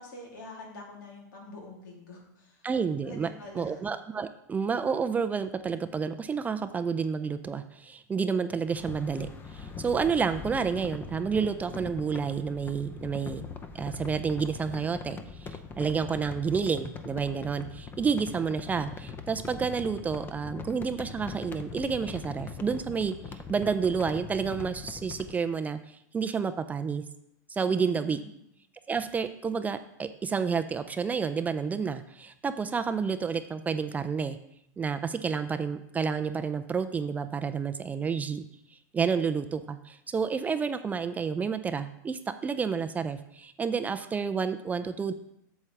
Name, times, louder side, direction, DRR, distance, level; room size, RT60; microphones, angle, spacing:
voice 1, 0.0-2.7 3.0-3.8 27.6-28.3, left 2 dB, 80° left, -1 dB, 2.9 m, -46 dB
voice 2, 2.6-3.3 3.6-13.4 13.7-15.5 15.8-27.0 27.5-28.2 28.9-34.4 34.8-38.4 38.9-45.1, right 6 dB, 15° right, 10 dB, 0.4 m, -30 dB
sound 1, 8.7-25.4, left 5 dB, 20° left, 0.7 m, -42 dB
8.3 x 7.2 x 3.3 m, 0.76 s
supercardioid pair, 130°, 10 cm